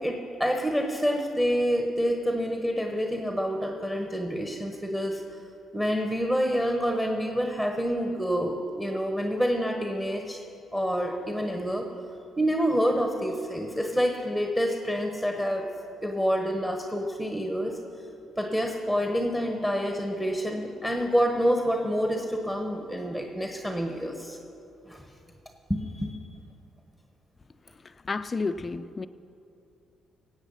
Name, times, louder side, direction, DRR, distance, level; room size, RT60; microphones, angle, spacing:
voice 1, 0.0-5.2 5.7-10.4 10.7-11.9 12.4-15.7 16.0-17.8 18.4-24.4 24.9-25.0 25.7-26.2, equal, 10° right, 3 dB, 1.3 m, -27 dB
voice 2, 27.8-29.1, left 4 dB, 30° left, 13 dB, 0.5 m, -31 dB
17.5 x 8.0 x 5.6 m, 2.7 s
cardioid pair, 90°, 0 cm